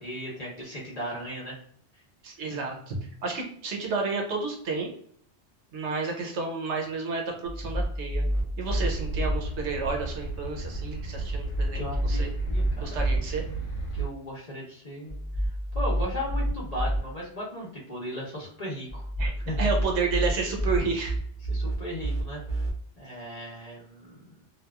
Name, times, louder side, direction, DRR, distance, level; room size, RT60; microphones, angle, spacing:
voice 1, 0.0-1.6 2.5-2.8 11.7-13.0 13.9-15.2 15.7-19.1 19.4-19.6 21.5-22.6 23.0-24.2, equal, 35° left, -5 dB, 0.8 m, -37 dB
voice 2, 2.2-4.9 5.7-8.3 8.6-12.3 12.8-13.4 19.2-19.3 19.6-21.1, right 4 dB, 70° right, 1 dB, 0.9 m, -31 dB
sound 1, 7.5-9.4 11.3-13.2 15.1-17.0 18.9-22.7, equal, 50° right, 0.4 m, -29 dB
sound 2, 8.7-14.0, right 3 dB, 75° left, 1.1 m, -34 dB
2.9 x 2.3 x 2.2 m, 0.63 s
omnidirectional pair, 1.3 m